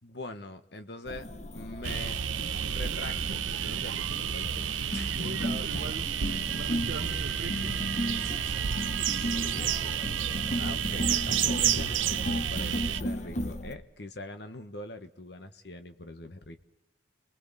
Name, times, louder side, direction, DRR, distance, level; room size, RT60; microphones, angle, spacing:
voice 1, 0.0-1.3 1.5-2.2 2.7-5.3 6.5-6.6 9.2-10.3 10.6-16.6, left 2 dB, 60° left, 8 dB, 1.3 m, -43 dB
sound 1, 1.1-13.7, left 1 dB, 35° left, 0.9 m, -36 dB
sound 2, 1.8-13.0, right 9 dB, 85° right, 0.7 m, -30 dB
voice 2, 5.0-6.1 6.5-7.8, right 2 dB, 60° right, 5 dB, 0.9 m, -40 dB
29.5 x 21.0 x 4.2 m, 0.93 s
head